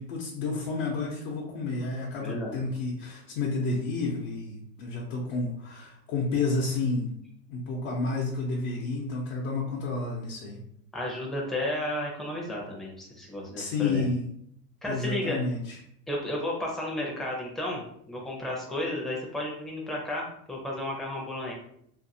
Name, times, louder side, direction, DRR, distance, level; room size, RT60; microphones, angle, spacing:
voice 1, 0.0-7.1 7.5-10.6 13.6-14.3 14.9-15.8, left 3 dB, 70° left, -4 dB, 0.8 m, -30 dB
voice 2, 2.2-2.6 10.9-14.1 14.8-15.4 16.1-21.5, left 1 dB, ahead, -3 dB, 0.5 m, -33 dB
2.6 x 2.6 x 2.6 m, 0.69 s
supercardioid pair, 125°, 45 cm